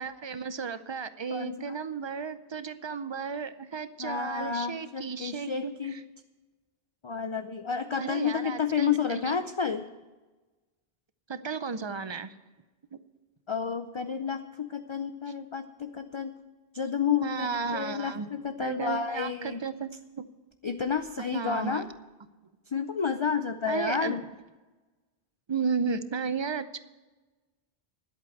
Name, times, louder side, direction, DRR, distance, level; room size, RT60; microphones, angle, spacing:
voice 1, 0.0-6.0 8.0-9.3 11.3-12.3 12.9-13.0 17.2-18.3 18.6-20.3 21.3-21.9 23.7-24.2 25.5-26.8, right 5 dB, 35° right, 12 dB, 0.5 m, -34 dB
voice 2, 1.3-1.8 4.0-6.0 7.0-9.8 13.5-16.3 16.7-19.6 20.6-21.9 22.7-24.2, left 6 dB, 40° left, 8 dB, 0.5 m, -30 dB
11.0 x 8.4 x 7.8 m, 1.2 s
omnidirectional pair, 1.1 m